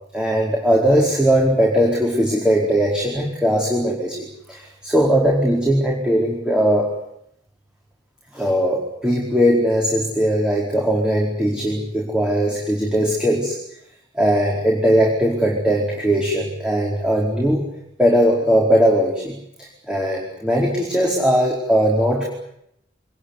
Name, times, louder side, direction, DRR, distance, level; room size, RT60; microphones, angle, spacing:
voice 1, 0.1-6.9 8.3-13.6 14.1-17.7 18.0-19.4 19.9-22.2, equal, 5° right, -2 dB, 4.7 m, -19 dB
25.0 x 21.0 x 9.9 m, 0.76 s
head